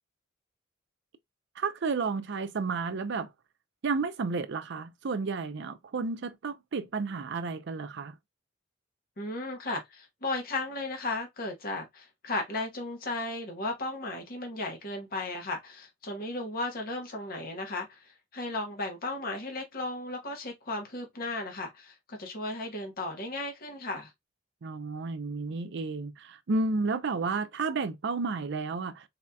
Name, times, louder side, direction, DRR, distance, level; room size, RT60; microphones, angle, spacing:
voice 1, 1.6-3.3 3.8-8.1 24.6-29.0, right 4 dB, 60° right, 0.5 m, -32 dB
voice 2, 9.2-24.1, left 2 dB, 50° left, 1.1 m, -35 dB
4.1 x 2.7 x 2.2 m
head